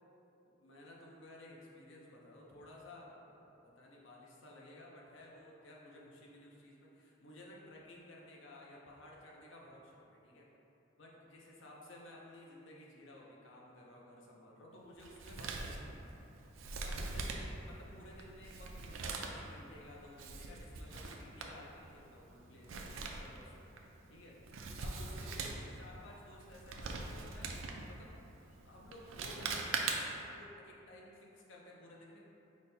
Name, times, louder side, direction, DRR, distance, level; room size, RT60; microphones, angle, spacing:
voice 1, 0.6-10.5 11.0-16.2 16.8-23.7 24.1-24.4 24.8-32.2, left 1 dB, 70° left, -3 dB, 0.7 m, -55 dB
Male speech man speaking, 15.0-30.3, right 3 dB, 80° right, 0.4 m, -43 dB
5.0 x 2.2 x 4.2 m, 2.8 s
head